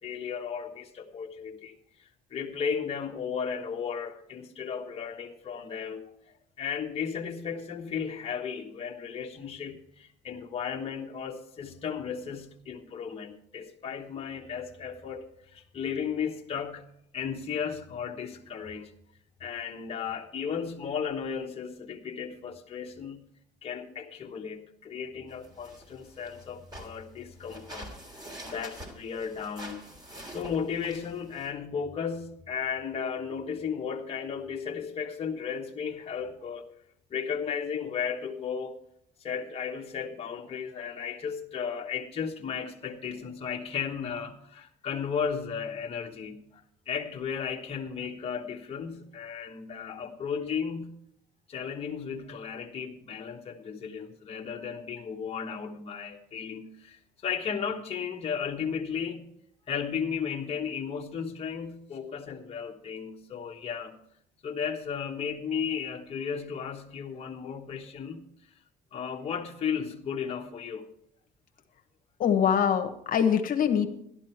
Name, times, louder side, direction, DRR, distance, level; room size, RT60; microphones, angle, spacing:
voice 1, 0.0-16.9 17.1-18.9 19.4-23.2 23.6-29.8 30.3-36.7 37.1-38.8 39.2-51.0 51.5-59.3 59.7-64.0 64.4-68.3 68.9-70.9, left 7 dB, 35° left, -1 dB, 1.2 m, -35 dB
sound 1, 25.3-31.5, equal, 25° right, 3.1 m, -46 dB
voice 2, 72.2-73.9, left 8 dB, 55° left, 7 dB, 1.3 m, -24 dB
12.0 x 11.5 x 4.5 m, 0.71 s
cardioid pair, 110°, 17 cm